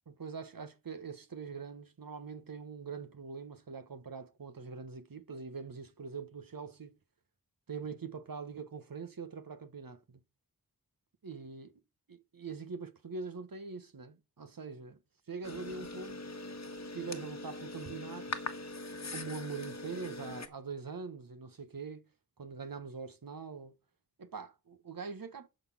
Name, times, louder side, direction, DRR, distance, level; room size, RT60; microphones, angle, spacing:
voice 1, 0.1-7.0 7.7-10.2 11.2-11.8 12.1-15.0 15.3-16.2 16.9-18.3 19.1-22.1 22.4-23.8 24.2-25.5, right 5 dB, 65° right, 1.3 m, -43 dB
sound 1, 15.4-20.5, left 2 dB, 45° left, 1.3 m, -42 dB
12.0 x 4.2 x 7.3 m
wide cardioid pair, 55°, 37 cm